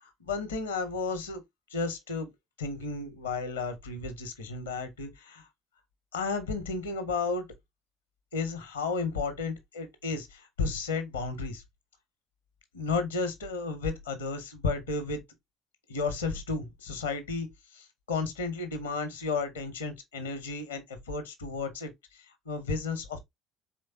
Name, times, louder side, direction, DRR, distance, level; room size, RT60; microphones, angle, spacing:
voice 1, 0.0-1.4 1.7-2.3 2.6-5.5 6.1-7.5 8.3-11.6 12.7-15.2 15.9-17.5 17.7-23.2, left 4 dB, 85° left, 0.8 m, -33 dB
4.4 x 3.3 x 2.7 m
figure-of-eight pair, 55°, 0 cm